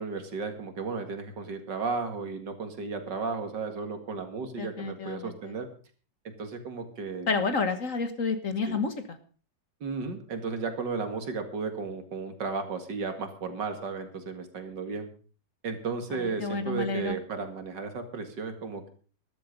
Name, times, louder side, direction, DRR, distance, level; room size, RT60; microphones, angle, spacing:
voice 1, 0.0-5.7 6.2-7.3 8.6-8.9 9.8-15.1 15.6-18.9, right 4 dB, 70° right, 7 dB, 2.7 m, -34 dB
voice 2, 4.6-5.3 7.3-8.9 16.2-17.2, left 4 dB, 50° left, 9 dB, 1.6 m, -29 dB
13.5 x 12.5 x 5.3 m, 0.40 s
omnidirectional pair, 2.0 m